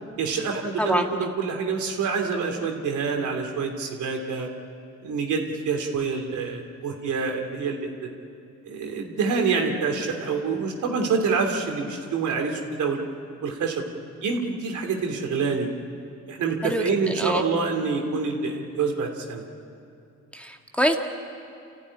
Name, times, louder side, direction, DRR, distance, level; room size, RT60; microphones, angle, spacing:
voice 1, 0.2-4.5 5.0-8.1 8.6-13.0 13.4-13.8 14.2-15.7 16.3-19.4, right 5 dB, 75° right, 3 dB, 3.0 m, -26 dB
voice 2, 0.8-1.1 16.6-17.4 20.3-21.0, equal, 5° left, 3 dB, 1.7 m, -25 dB
28.5 x 15.0 x 10.0 m, 2.5 s
cardioid pair, 90°, 30 cm